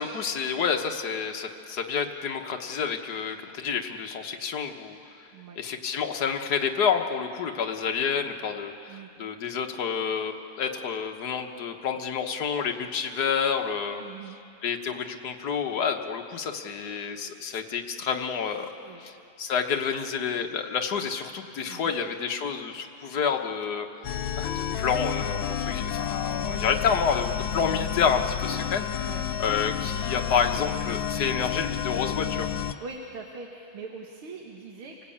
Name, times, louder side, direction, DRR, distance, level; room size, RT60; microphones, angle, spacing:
voice 1, 0.0-5.0 5.6-14.0 14.6-18.7 19.0-23.9 24.4-28.8 29.4-32.5, left 6 dB, 55° left, 4 dB, 1.6 m, -29 dB
voice 2, 14.0-14.4 18.8-19.0 21.7-22.0 26.4-26.6 29.0-29.3 32.6-35.1, right 4 dB, 90° right, 1 dB, 2.3 m, -42 dB
sound 1, 24.0-32.7, left 9 dB, 75° left, 1.5 m, -30 dB
28.5 x 18.5 x 8.6 m, 2.7 s
omnidirectional pair, 2.3 m